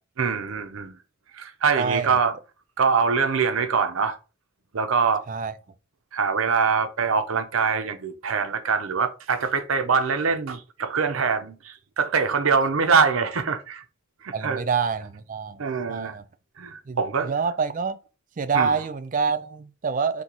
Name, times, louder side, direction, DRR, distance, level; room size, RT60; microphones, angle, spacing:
voice 1, 0.2-0.9 1.4-2.4 2.8-4.2 4.7-5.2 6.1-13.8 14.2-14.6 15.6-16.1 16.6-17.3 18.5-18.8, right 5 dB, 80° right, 0.6 m, -24 dB
voice 2, 1.8-2.2 5.3-5.5 14.3-15.6 15.9-16.2 16.9-18.0 18.4-20.2, right 5 dB, 40° right, 0.4 m, -26 dB
5.2 x 2.8 x 2.9 m
head